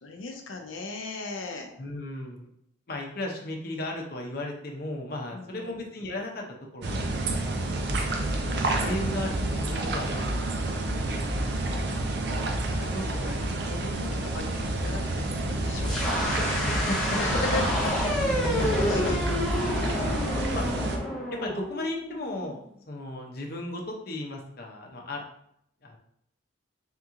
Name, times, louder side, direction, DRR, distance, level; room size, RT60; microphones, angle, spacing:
voice 1, 0.0-1.7 5.3-5.7 10.6-11.8 12.8-16.7 17.2-17.9 18.2-19.4, left 3 dB, 85° left, 3 dB, 0.6 m, -37 dB
voice 2, 1.8-2.5 2.9-6.4 6.7-7.5 8.4-10.9 11.9-12.5 12.9-14.0 16.6-17.2 18.1-20.1 20.5-20.7 21.3-22.6 22.9-25.2 25.8-26.0, left 1 dB, 50° left, 0 dB, 0.6 m, -36 dB
sound 1, 6.8-21.0, right 2 dB, 55° right, 0.5 m, -29 dB
sound 2, 15.8-22.6, left 1 dB, ahead, 0.7 m, -29 dB
3.6 x 2.9 x 3.6 m, 0.72 s
head